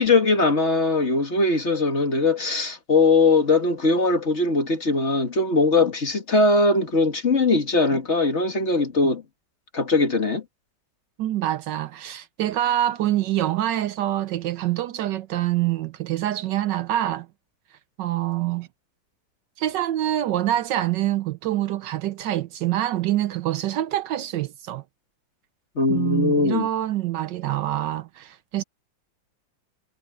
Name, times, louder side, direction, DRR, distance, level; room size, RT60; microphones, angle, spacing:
voice 1, 0.0-9.2 9.7-10.4 25.8-26.7, left 3 dB, 35° left, 2.0 m, -20 dB
voice 2, 11.2-17.3 18.0-18.7 19.6-24.8 25.9-28.6, right 13 dB, 70° right, 1.3 m, -25 dB
omnidirectional pair, 2.1 m